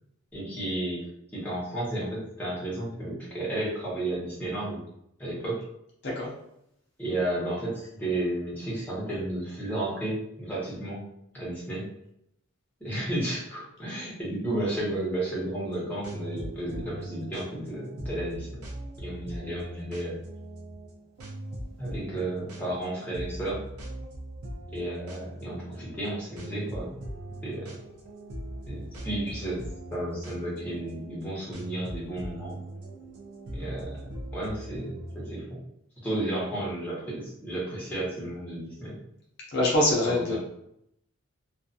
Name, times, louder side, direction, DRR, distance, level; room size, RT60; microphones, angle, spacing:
voice 1, 0.3-1.0 1.3-4.8 5.2-5.6 7.0-11.0 11.3-11.8 12.8-18.5 19.0-20.2 21.8-23.6 24.7-27.0 27.4-27.8 28.7-29.6 29.9-32.6 33.5-34.1 34.3-35.6 36.0-39.0 40.0-40.4, right 1 dB, 5° left, -7 dB, 0.9 m, -32 dB
sound 1, 15.6-35.3, right 1 dB, 85° right, 0.5 m, -40 dB
voice 2, 39.5-40.4, left 1 dB, 50° left, -3 dB, 0.5 m, -24 dB
2.4 x 2.3 x 2.6 m, 0.76 s
head